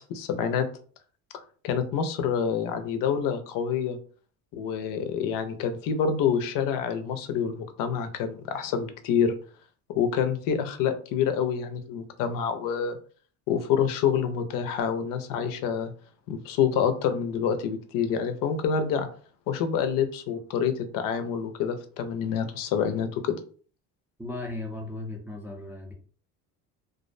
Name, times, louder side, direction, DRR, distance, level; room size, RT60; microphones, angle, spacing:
voice 1, 0.1-0.7 1.6-4.0 4.5-9.3 9.9-13.0 13.5-15.9 16.3-19.1 19.5-23.3, left 7 dB, 70° left, 8 dB, 0.5 m, -27 dB
voice 2, 24.2-25.9, left 2 dB, 5° right, -1 dB, 0.4 m, -36 dB
2.4 x 2.0 x 2.5 m, 0.42 s
cardioid pair, 110°, 34 cm